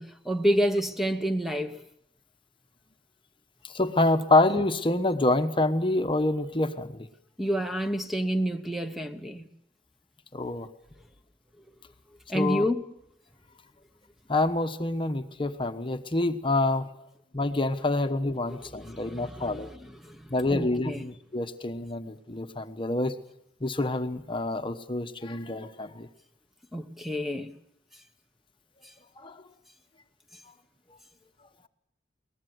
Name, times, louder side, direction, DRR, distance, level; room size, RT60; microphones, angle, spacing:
voice 1, 0.0-1.8 7.4-9.5 12.3-12.8 18.5-18.6 18.8-21.0 26.7-27.5, equal, ahead, 1.1 m, -29 dB
voice 2, 3.6-7.1 10.3-10.7 12.3-12.7 14.3-16.9 17.3-19.7 20.3-23.2 23.6-26.1 29.2-29.4, left 2 dB, 30° left, 1.2 m, -27 dB
22.5 x 19.5 x 7.9 m
head